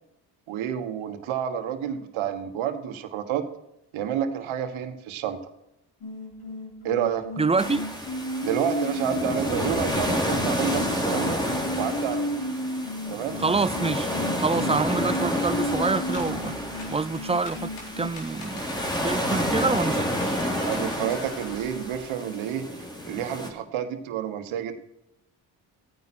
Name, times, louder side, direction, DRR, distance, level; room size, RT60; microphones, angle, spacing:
voice 1, 0.5-3.4 3.9-5.4 6.8-7.3 8.4-11.4 11.8-12.3 13.1-13.4 20.6-22.6 23.0-24.7, right 9 dB, 70° right, 1.6 m, -29 dB
sound 1, 6.0-18.1, left 1 dB, 50° left, 3.5 m, -34 dB
voice 2, 7.4-7.8 13.4-14.1 14.4-16.6 16.9-20.1, right 4 dB, 10° right, 0.6 m, -26 dB
sound 2, 7.6-23.5, equal, 10° left, 3.0 m, -30 dB
sound 3, 15.5-22.0, left 3 dB, 75° left, 3.9 m, -43 dB
14.5 x 9.5 x 4.4 m
hypercardioid pair, 55°, 49 cm